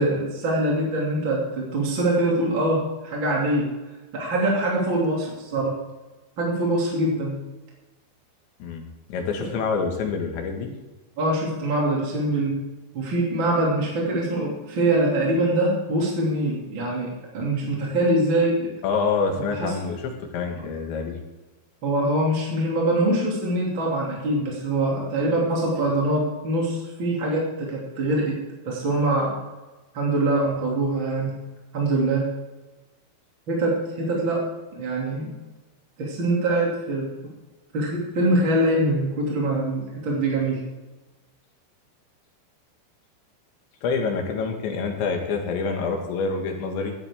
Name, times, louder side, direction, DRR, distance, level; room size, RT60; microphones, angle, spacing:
voice 1, 0.0-3.7 4.1-5.7 6.4-7.4 11.2-12.6 12.9-18.7 19.4-19.7 21.8-28.4 28.6-29.3 29.9-31.4 31.7-32.3 33.5-34.4 34.7-35.3 36.0-37.1 37.7-40.6, right 1 dB, 30° right, -3 dB, 2.7 m, -23 dB
voice 2, 9.1-10.7 18.8-21.2 43.8-46.9, left 5 dB, 75° left, 2 dB, 4.0 m, -26 dB
15.5 x 11.5 x 3.7 m, 1.1 s
omnidirectional pair, 5.4 m